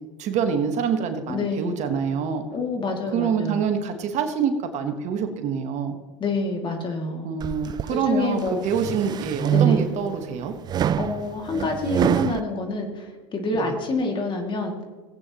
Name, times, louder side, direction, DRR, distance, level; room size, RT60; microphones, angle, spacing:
voice 1, 0.2-2.4 3.1-6.0 7.2-10.5, right 7 dB, 45° right, 6 dB, 1.5 m, -26 dB
voice 2, 1.3-1.8 2.5-3.7 6.2-7.3 7.9-8.6 9.5-9.9 11.0-14.7, left 3 dB, 30° left, 3 dB, 2.4 m, -27 dB
sound 1, 7.4-8.0 8.5-10.1 10.7-12.4, right 9 dB, 25° right, 0.3 m, -25 dB
17.5 x 8.7 x 3.0 m, 1.3 s
hypercardioid pair, 95°, 16 cm